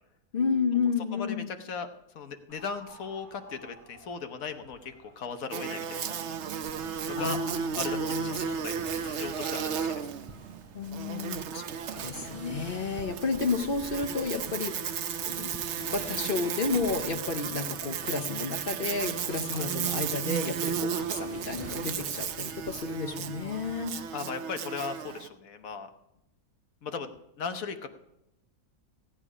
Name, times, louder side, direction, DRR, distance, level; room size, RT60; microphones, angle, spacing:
voice 1, 0.3-1.5 7.1-8.5 10.7-24.0, left 4 dB, 45° left, 7 dB, 0.9 m, -32 dB
voice 2, 1.1-1.9 2.1-6.2 7.1-7.4 7.8-10.1 19.5-19.8 24.1-25.9 26.8-27.9, left 5 dB, 65° left, 8 dB, 1.4 m, -37 dB
sound 1, 2.5-21.4, right 1 dB, 25° left, 5.0 m, -59 dB
Buzz, 5.5-25.3, right 8 dB, 60° right, 0.8 m, -34 dB
sound 2, 6.6-24.2, equal, 10° right, 0.8 m, -49 dB
16.0 x 8.9 x 4.9 m, 0.85 s
omnidirectional pair, 1.6 m